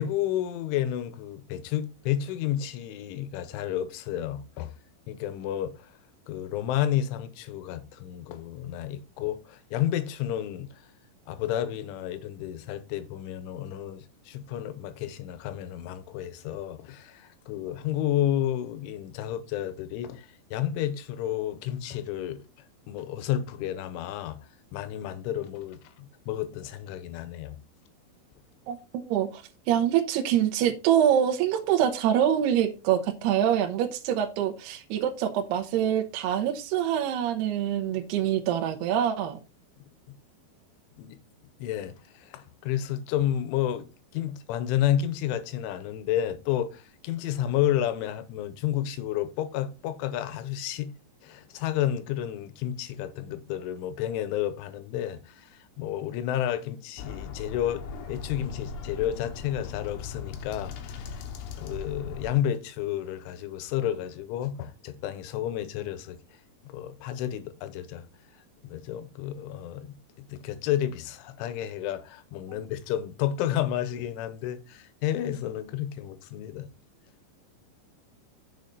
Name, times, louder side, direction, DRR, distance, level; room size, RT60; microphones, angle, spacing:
voice 1, 0.0-4.7 5.1-5.9 6.3-10.8 11.3-22.4 22.9-24.4 24.7-27.6 41.0-41.2 41.6-43.9 44.1-50.9 51.2-61.2 61.6-66.2 66.7-68.1 68.6-76.7, left 11 dB, 85° left, 3.4 m, -31 dB
voice 2, 28.7-29.4 29.7-39.4 72.5-72.6, right 10 dB, 75° right, 2.8 m, -25 dB
sound 1, 57.0-62.3, left 5 dB, 70° left, 2.8 m, -39 dB
6.9 x 6.7 x 4.0 m
omnidirectional pair, 5.4 m